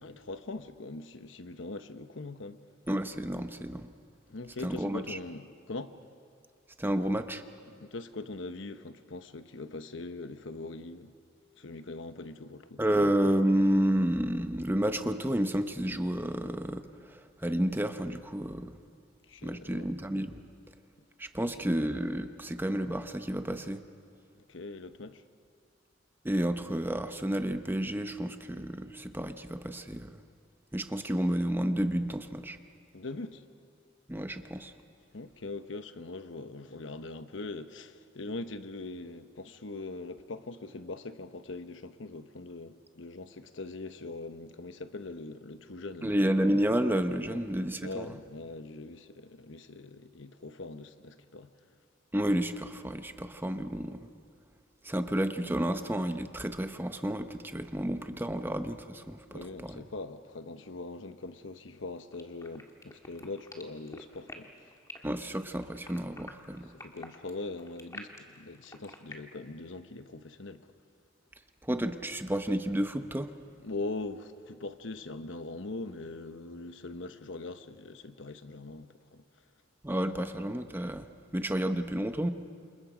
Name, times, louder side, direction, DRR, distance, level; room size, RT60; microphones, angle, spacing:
voice 1, 0.0-2.6 4.3-5.9 7.7-11.1 11.6-12.8 19.2-19.9 21.4-21.7 24.5-25.2 32.9-33.4 35.1-46.2 47.3-47.4 47.8-51.5 59.3-64.5 66.7-70.7 73.6-79.2 81.6-81.7, left 3 dB, 80° left, 1.0 m, -42 dB
voice 2, 2.9-3.9 4.6-5.2 6.8-7.4 12.8-18.7 19.4-20.4 21.2-23.8 26.2-30.2 30.7-32.6 34.1-34.7 46.0-48.1 52.1-54.0 54.8-59.8 65.0-66.7 71.6-73.3 79.8-81.1 81.3-82.3, right 1 dB, 10° right, 0.9 m, -30 dB
sound 1, 62.1-69.1, left 2 dB, 15° left, 1.8 m, -46 dB
28.5 x 28.0 x 5.1 m
head